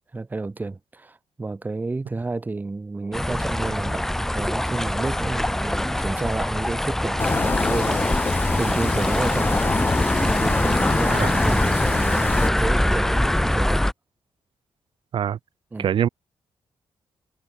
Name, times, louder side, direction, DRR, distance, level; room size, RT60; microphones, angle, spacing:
voice 1, 0.1-9.9 10.2-13.8 15.7-15.9, right 3 dB, 20° right, 6.0 m, -31 dB
sound 1, 3.1-13.9, left 1 dB, 5° left, 0.4 m, -23 dB
sound 2, 7.2-12.5, left 4 dB, 25° left, 2.0 m, -25 dB
voice 2, 11.1-11.4 15.1-15.4 15.8-16.1, right 9 dB, 65° right, 1.7 m, -24 dB
wide cardioid pair, 155°, 9 cm